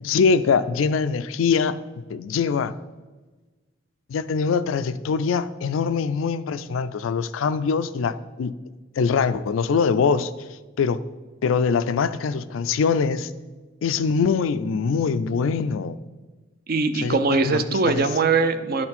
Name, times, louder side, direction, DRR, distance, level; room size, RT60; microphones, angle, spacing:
voice 1, 0.0-1.8 2.1-2.7 4.1-8.5 9.0-10.3 10.8-11.0 11.4-13.3 13.8-16.0 17.0-17.2 17.4-17.6 17.9-18.0, left 5 dB, 90° left, 13 dB, 0.4 m, -23 dB
voice 2, 16.7-18.9, right 4 dB, 50° right, 10 dB, 0.5 m, -21 dB
11.0 x 4.3 x 4.2 m, 1.3 s
head